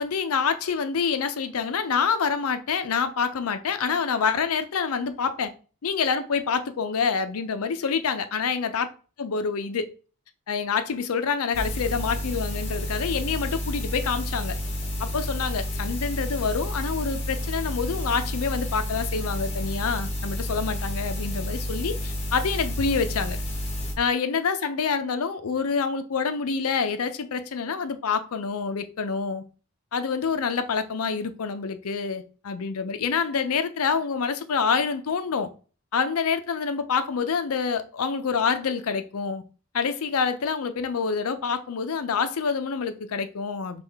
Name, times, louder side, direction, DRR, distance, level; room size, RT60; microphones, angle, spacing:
voice 1, 0.0-5.5 5.8-8.9 9.2-9.9 10.5-14.6 15.0-23.4 24.0-29.4 29.9-35.5 35.9-39.4 39.7-43.8, left 5 dB, 80° left, 0.5 m, -27 dB
sound 1, 11.5-23.9, left 1 dB, 30° left, 1.1 m, -30 dB
5.5 x 2.4 x 3.4 m
head